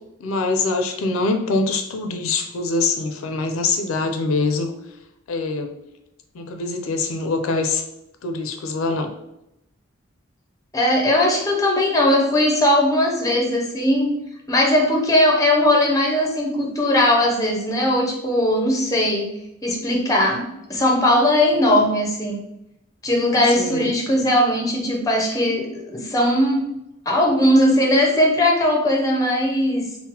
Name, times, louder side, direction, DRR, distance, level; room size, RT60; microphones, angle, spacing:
voice 1, 0.2-4.7 5.3-5.7 6.3-7.8 8.2-9.1 23.6-23.9, left 3 dB, 75° left, 6 dB, 0.4 m, -24 dB
voice 2, 10.7-14.1 14.5-19.3 19.6-22.4 23.0-26.7 27.1-29.9, left 1 dB, 15° left, 0 dB, 0.5 m, -19 dB
3.7 x 2.0 x 2.8 m, 0.84 s
head